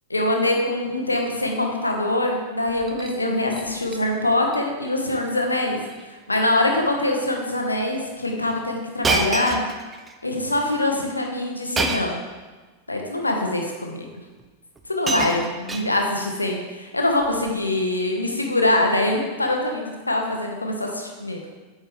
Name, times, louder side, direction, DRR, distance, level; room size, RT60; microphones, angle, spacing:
voice 1, 0.1-5.8 6.1-9.6 10.2-12.2 12.9-14.1 14.9-21.4, left 1 dB, 80° left, 2 dB, 1.0 m, -24 dB
Shatter, 2.7-3.2 3.5-4.0 4.3-4.6 4.8-4.9 5.8-6.0 6.4-6.6 7.4-7.5 9.0-10.1 11.8-12.2 13.3-13.4 14.4-14.5 14.8-16.3 17.2-17.5, right 3 dB, 15° right, 0.6 m, -28 dB
8.7 x 4.7 x 3.6 m, 1.3 s
figure-of-eight pair, 90°, 0 cm